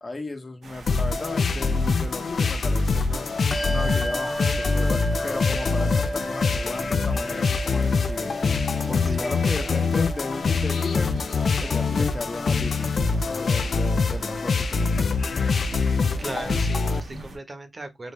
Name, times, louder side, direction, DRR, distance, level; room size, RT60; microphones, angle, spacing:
voice 1, 0.0-3.3 3.7-8.3 8.9-11.1 11.6-15.5, left 2 dB, 35° left, 1.1 m, -35 dB
sound 1, 0.6-17.4, right 2 dB, 80° right, 1.3 m, -43 dB
sound 2, 0.9-17.0, left 4 dB, 70° left, 0.5 m, -24 dB
Bell, 3.5-13.5, equal, 10° left, 0.7 m, -35 dB
voice 2, 9.1-10.0 16.2-18.1, right 2 dB, 45° right, 1.1 m, -38 dB
3.9 x 3.4 x 3.3 m
cardioid pair, 55°, 0 cm